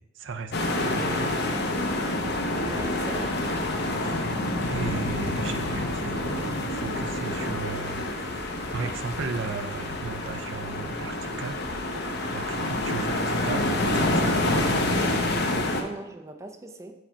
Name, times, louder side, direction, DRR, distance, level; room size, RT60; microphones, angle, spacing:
voice 1, 0.0-1.4 4.0-4.3 4.7-11.7 12.3-15.4, right 4 dB, 70° right, 8 dB, 0.5 m, -36 dB
sound 1, 0.5-15.8, left 1 dB, 60° left, 0.7 m, -27 dB
voice 2, 2.6-3.3 4.1-4.2 13.2-13.3 15.0-15.3 15.7-16.9, right 2 dB, 15° right, 5 dB, 0.4 m, -41 dB
4.8 x 4.4 x 5.5 m, 0.97 s
head